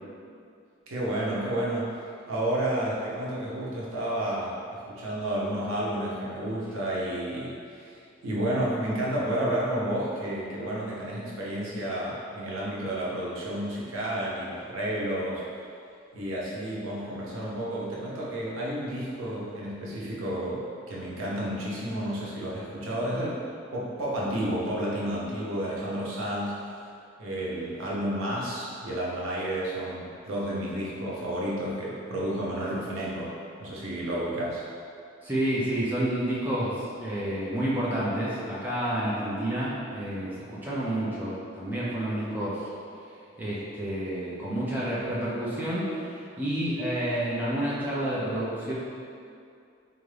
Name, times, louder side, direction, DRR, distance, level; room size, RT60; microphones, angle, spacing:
voice 1, 0.9-1.9 2.3-15.4 16.1-23.4 23.7-26.6 27.2-33.3 33.6-34.6, right 1 dB, 90° right, -6 dB, 0.8 m, -31 dB
voice 2, 35.2-42.7 43.4-48.7, right 1 dB, 10° right, -8 dB, 0.5 m, -29 dB
3.5 x 2.5 x 3.3 m, 2.4 s
head